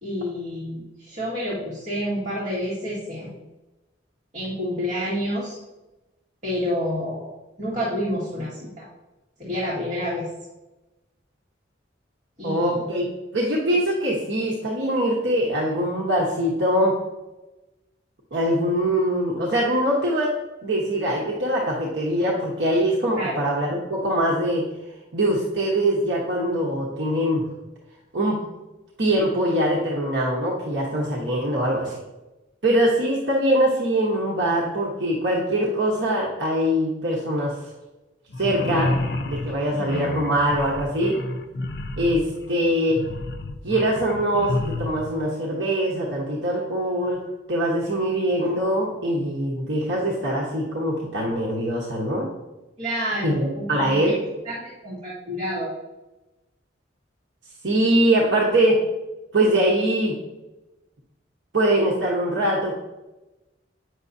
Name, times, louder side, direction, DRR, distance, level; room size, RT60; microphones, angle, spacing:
voice 1, 0.0-3.3 4.3-5.6 6.4-7.3 7.6-8.9 9.4-10.3 12.4-12.9 23.2-23.4 39.7-39.9 48.0-48.1 52.8-54.0 54.5-55.7, equal, 40° right, -8 dB, 1.9 m, -29 dB
voice 2, 12.4-13.1 13.3-17.0 18.3-20.3 20.6-24.7 25.1-27.5 28.1-28.4 29.0-32.0 32.6-37.7 38.4-39.0 39.2-41.2 42.0-43.0 43.6-47.2 47.5-52.3 53.2-54.1 57.6-58.8 59.3-60.2 61.5-62.8, right 1 dB, 65° right, -3 dB, 1.0 m, -23 dB
sound 1, 38.3-45.1, left 2 dB, 55° left, 0.5 m, -30 dB
8.2 x 6.3 x 2.7 m, 1.1 s
head